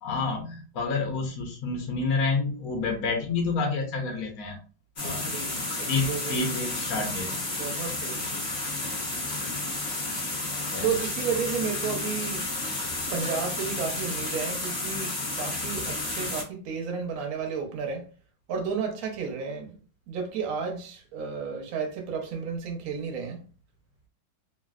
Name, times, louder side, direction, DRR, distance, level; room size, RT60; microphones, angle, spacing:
voice 1, 0.0-4.6 5.0-5.4 5.9-7.4 10.7-10.9, left 4 dB, 65° left, 0.9 m, -29 dB
sound 1, 5.0-16.4, left 2 dB, 40° left, 0.8 m, -31 dB
voice 2, 5.0-6.5 7.6-8.2 10.8-12.5 13.1-18.1 18.5-19.8 20.1-23.4, right 6 dB, 60° right, 0.9 m, -32 dB
3.2 x 2.4 x 2.3 m
omnidirectional pair, 2.2 m